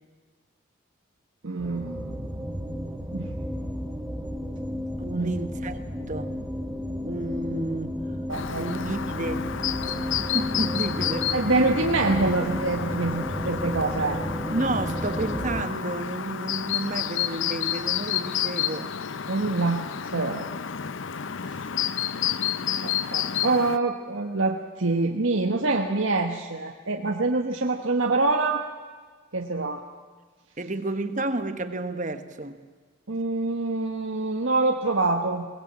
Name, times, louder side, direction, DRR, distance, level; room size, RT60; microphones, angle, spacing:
voice 1, 1.4-2.5 3.1-3.3 5.1-5.3 8.3-8.6 11.3-14.3 19.3-20.5 21.5-21.6 22.8-28.6 29.3-29.8 33.1-35.5, right 3 dB, 65° right, 3 dB, 1.3 m, -25 dB
sound 1, 1.6-15.6, equal, 10° right, 1.5 m, -32 dB
voice 2, 5.0-5.8 6.1-6.3 7.0-8.0 8.6-9.5 10.2-11.3 14.5-18.9 30.6-32.6, right 2 dB, 35° right, 9 dB, 1.4 m, -31 dB
Chirp tweet, 8.3-23.8, left 9 dB, 60° left, 0.6 m, -30 dB
22.5 x 19.5 x 8.8 m, 1.5 s
head